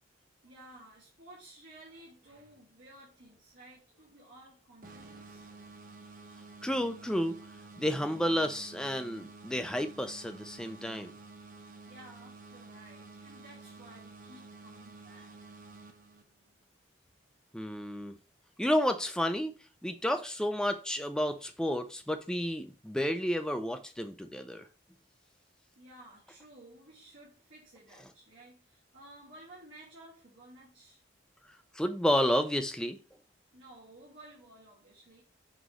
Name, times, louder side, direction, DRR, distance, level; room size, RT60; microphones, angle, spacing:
voice 1, 0.4-5.5 11.8-15.4 16.6-16.7 25.8-31.0 33.5-35.2, right 1 dB, 75° right, 2.2 m, -54 dB
sound 1, 4.8-16.5, right 3 dB, 45° right, 0.8 m, -51 dB
voice 2, 6.6-7.4 7.8-11.1 17.5-18.2 18.6-19.5 19.8-24.7 31.8-33.0, equal, 5° left, 0.5 m, -31 dB
6.1 x 3.1 x 5.0 m
head